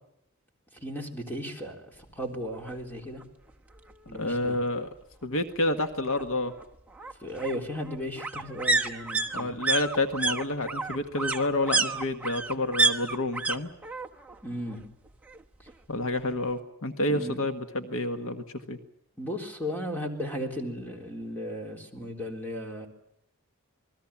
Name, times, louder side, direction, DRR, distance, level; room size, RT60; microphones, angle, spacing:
voice 1, 0.7-3.2 4.1-4.6 7.2-9.5 14.4-14.8 15.6-15.7 17.1-17.4 19.2-22.9, equal, 10° left, 2 dB, 3.9 m, -35 dB
sound 1, 2.7-2.8 3.1-3.2 3.5-4.5 5.8-13.6 13.8-14.4 14.7-15.7 16.0-16.1, right 3 dB, 5° right, 1.1 m, -30 dB
voice 2, 4.1-4.9 5.2-6.5 9.3-13.7 15.9-18.8, left 2 dB, 65° left, 7 dB, 1.7 m, -29 dB
28.0 x 21.0 x 7.3 m, 0.79 s
head